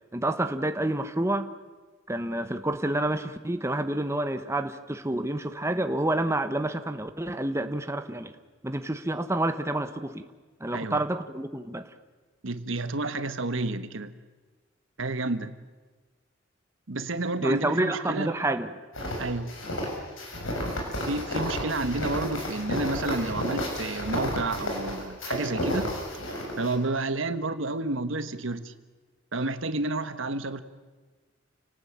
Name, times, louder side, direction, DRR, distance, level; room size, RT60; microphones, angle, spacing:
voice 1, 0.1-1.5 2.1-8.3 8.6-10.2 10.6-11.9 17.4-18.7, right 1 dB, 15° right, 8 dB, 1.2 m, -28 dB
voice 2, 10.7-11.0 12.4-14.1 15.0-15.5 16.9-18.4 19.2-19.6 21.0-25.9 26.6-28.7 29.3-30.6, right 2 dB, 70° right, 11 dB, 1.4 m, -30 dB
sound 1, 18.9-26.7, equal, 80° left, 7.0 m, -31 dB
29.5 x 19.0 x 8.8 m, 1.3 s
head